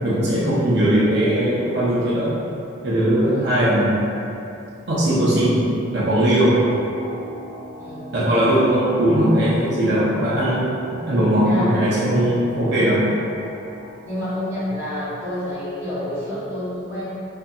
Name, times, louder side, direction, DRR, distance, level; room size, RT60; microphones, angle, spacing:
voice 1, 0.0-2.3 2.8-3.9 4.9-5.5 5.9-6.5 8.1-13.0, right 1 dB, 55° right, -9 dB, 0.6 m, -19 dB
voice 2, 3.2-3.6 7.8-8.1 11.4-11.7 14.0-17.1, left 1 dB, 15° right, -13 dB, 0.7 m, -29 dB
sound 1, 6.4-14.5, equal, 60° left, 0.9 m, -38 dB
2.6 x 2.5 x 2.3 m, 2.7 s
head